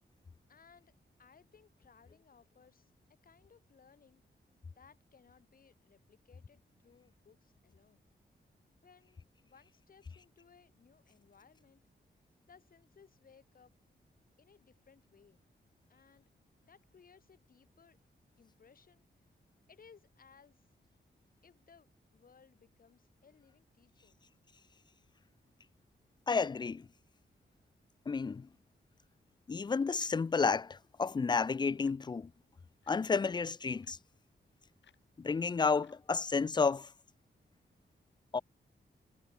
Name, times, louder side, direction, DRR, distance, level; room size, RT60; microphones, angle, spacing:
voice 1, 0.5-2.9 3.2-4.2 4.7-8.1 8.8-11.8 12.5-13.7 14.4-15.4 15.9-16.3 16.6-18.0 18.4-19.0 19.7-20.7 21.4-24.2, left 6 dB, 50° left, 2.9 m, -63 dB
voice 2, 26.3-26.9 28.1-28.5 29.5-32.3 32.9-34.0 35.2-36.9 38.3-38.4, left 5 dB, 25° left, 0.4 m, -31 dB
sound 1, 31.5-36.7, left 8 dB, 85° left, 6.4 m, -73 dB
wide cardioid pair, 155°, 18 cm